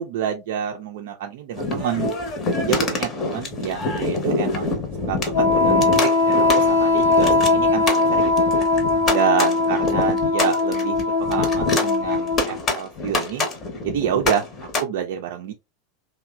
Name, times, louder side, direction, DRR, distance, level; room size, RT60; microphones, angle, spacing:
voice 1, 0.0-2.1 2.5-4.8 5.1-8.5 9.1-13.5 13.8-15.5, right 9 dB, 60° right, 0.3 m, -28 dB
sound 1, 1.6-14.8, left 2 dB, 35° left, 0.7 m, -26 dB
Wind instrument woodwind instrument, 5.3-12.7, left 3 dB, 80° left, 0.7 m, -20 dB
3.0 x 2.1 x 2.3 m
figure-of-eight pair, 85°, 0 cm